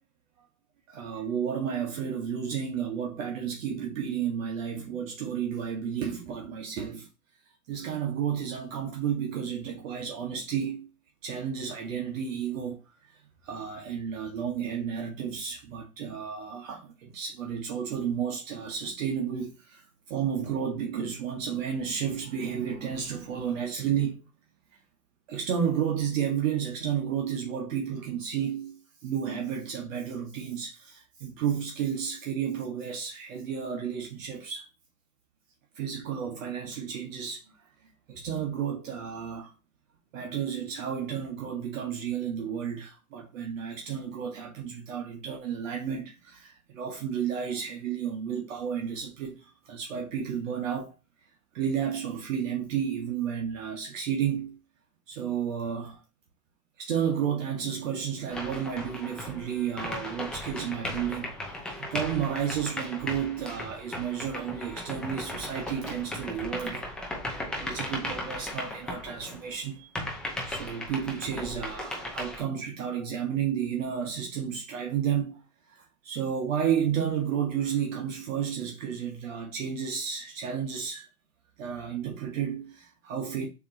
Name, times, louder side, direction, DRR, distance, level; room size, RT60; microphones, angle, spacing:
voice 1, 0.9-7.1 7.7-10.9 11.2-24.2 25.3-34.7 35.7-39.5 40.1-51.0 51.5-54.6 55.1-56.0 56.8-66.9 67.6-69.9 70.5-75.4 75.7-81.1 81.6-83.5, right 8 dB, 55° right, 1.1 m, -32 dB
sound 1, 58.3-69.6 69.9-72.4, left 1 dB, ahead, 0.5 m, -37 dB
6.9 x 2.9 x 2.6 m
hypercardioid pair, 125°, 47 cm